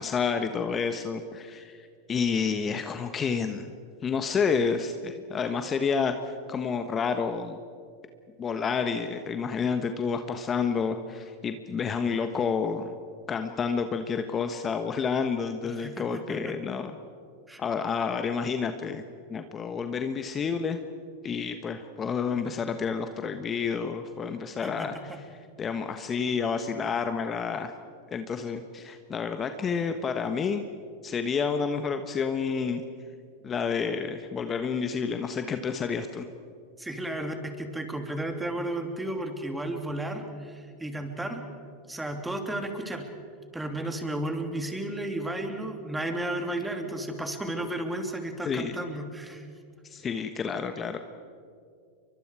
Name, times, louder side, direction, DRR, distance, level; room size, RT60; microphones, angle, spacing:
voice 1, 0.0-3.7 4.0-7.6 8.4-12.9 13.3-16.9 17.6-19.0 19.3-20.8 21.2-27.7 28.1-30.6 31.0-32.8 33.4-36.3 48.4-48.7 49.8-51.0, left 5 dB, 30° left, 7 dB, 1.4 m, -29 dB
voice 2, 15.8-16.5 17.5-17.6 24.6-25.2 36.8-41.4 41.9-43.1 43.5-49.5, right 1 dB, 10° right, 5 dB, 3.1 m, -33 dB
30.0 x 24.0 x 4.9 m, 2.2 s
hypercardioid pair, 90°, 0 cm